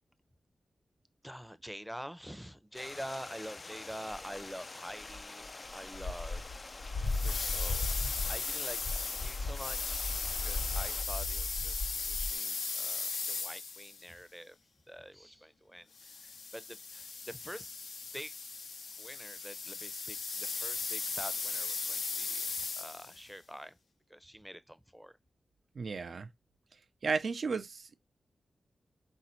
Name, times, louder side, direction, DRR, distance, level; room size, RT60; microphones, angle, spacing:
voice 1, 1.2-5.5 5.7-6.9 7.2-14.6 14.9-17.8 18.1-18.3 19.0-22.5 22.7-23.8 24.1-25.2, equal, 5° right, 0.6 m, -47 dB
Stream, 2.7-11.0, left 3 dB, 45° left, 0.4 m, -47 dB
sound 1, 4.1-4.4 5.0-12.4, left 3 dB, 65° left, 1.0 m, -37 dB
sound 2, 7.0-14.1 16.0-23.2, left 4 dB, 80° left, 0.7 m, -37 dB
voice 2, 25.7-26.3 27.0-28.0, right 4 dB, 70° right, 0.5 m, -34 dB
3.9 x 2.7 x 4.3 m
cardioid pair, 45°, 0 cm